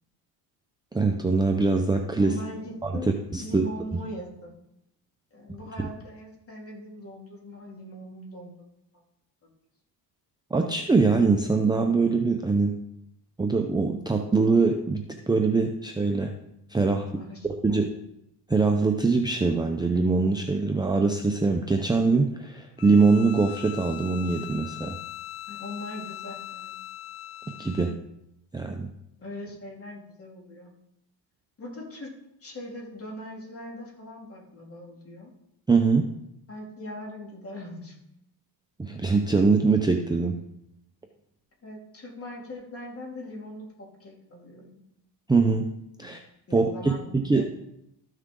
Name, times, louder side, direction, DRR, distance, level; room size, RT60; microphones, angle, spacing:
voice 1, 0.9-2.3 2.8-2.9 3.3-3.6 10.5-12.7 13.4-16.3 16.7-17.1 17.6-17.9 18.5-24.9 27.6-27.9 28.5-28.9 35.7-36.1 38.8-40.4 45.3-45.7 46.0-46.2 46.5-47.4, right 4 dB, 10° right, 3 dB, 0.6 m, -23 dB
voice 2, 2.2-3.1 3.4-4.6 5.3-8.5 17.1-17.8 25.5-26.7 29.2-30.7 31.6-32.1 32.4-35.3 36.5-37.9 41.6-44.8 46.0-46.2 46.5-47.0 47.4-47.5, left 1 dB, 30° left, -2 dB, 2.9 m, -41 dB
Bowed string instrument, 22.8-28.0, left 15 dB, 60° left, 0.6 m, -40 dB
13.5 x 6.5 x 3.8 m, 0.81 s
cardioid pair, 120°, 44 cm